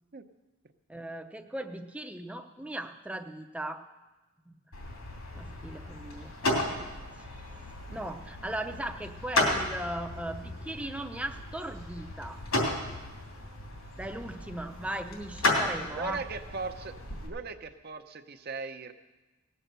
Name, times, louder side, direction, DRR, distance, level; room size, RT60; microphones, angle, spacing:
voice 1, 0.9-3.8 4.5-4.6 5.3-6.4 6.6-6.9 7.2-7.3 7.9-12.4 14.0-16.2, right 1 dB, 5° right, 6 dB, 0.6 m, -38 dB
sound 1, 4.7-17.3, left 2 dB, 85° left, 3.1 m, -34 dB
voice 2, 15.9-17.0 17.2-18.9, right 4 dB, 45° right, 8 dB, 0.7 m, -38 dB
18.5 x 7.7 x 6.7 m, 1.2 s
head